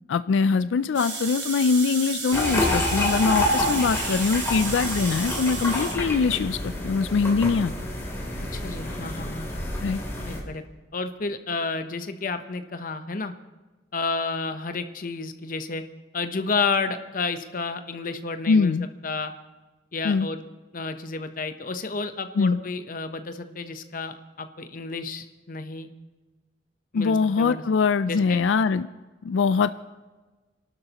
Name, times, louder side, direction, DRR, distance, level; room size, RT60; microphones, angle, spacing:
voice 1, 0.1-7.7 9.8-10.0 18.5-18.9 20.0-20.3 22.4-22.6 26.9-28.9 29.2-29.7, left 5 dB, 90° left, 13 dB, 0.4 m, -23 dB
sound 1, 0.9-5.9, right 4 dB, 70° right, 3.9 m, -33 dB
sound 2, 2.3-10.4, left 1 dB, 15° left, 3.2 m, -28 dB
voice 2, 8.5-9.6 10.2-10.6 10.9-13.3 13.9-15.8 16.1-18.7 19.0-19.3 19.9-20.4 20.7-25.9 26.9-27.6 28.1-28.4, left 4 dB, 50° left, 8 dB, 0.9 m, -31 dB
29.0 x 12.0 x 3.0 m, 1.2 s
head